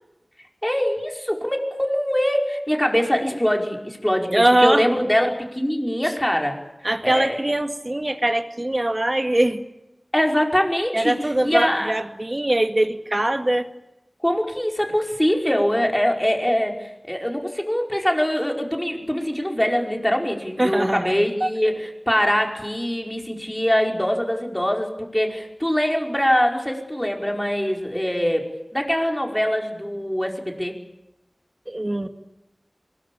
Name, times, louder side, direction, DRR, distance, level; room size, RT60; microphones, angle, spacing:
voice 1, 0.6-6.5 7.0-7.4 10.1-11.9 14.2-30.7, equal, 15° left, 1 dB, 5.2 m, -23 dB
voice 2, 4.3-4.8 6.8-9.6 10.9-13.7 20.6-21.5 31.7-32.1, right 1 dB, 40° right, 7 dB, 2.1 m, -22 dB
24.0 x 22.0 x 8.8 m, 0.91 s
wide cardioid pair, 50°, 0 cm